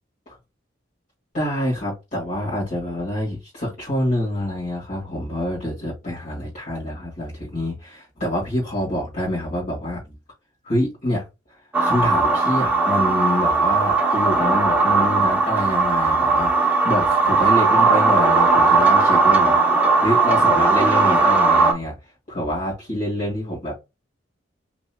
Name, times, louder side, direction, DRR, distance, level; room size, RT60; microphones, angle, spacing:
voice 1, 1.3-10.1 10.6-11.2 11.8-19.7 20.0-22.0 22.3-23.7, equal, 45° left, 2.1 m, -26 dB
sound 1, 11.7-21.7, right 3 dB, 10° right, 0.7 m, -18 dB
5.2 x 3.0 x 2.3 m
head